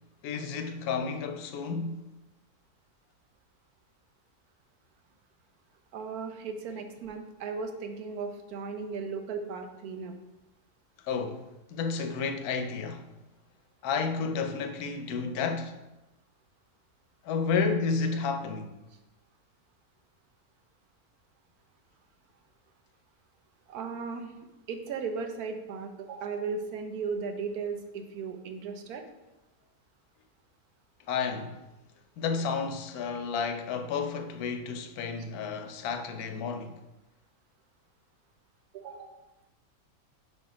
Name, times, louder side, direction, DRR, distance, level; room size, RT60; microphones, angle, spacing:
voice 1, 0.2-2.0 11.0-13.1 13.8-15.7 17.2-18.8 31.1-31.6 32.2-36.8, left 5 dB, 85° left, 1.1 m, -31 dB
voice 2, 5.9-10.1 23.7-24.3 24.7-29.0 38.7-39.1, right 5 dB, 85° right, 1.2 m, -36 dB
5.1 x 4.4 x 4.7 m
omnidirectional pair, 1.5 m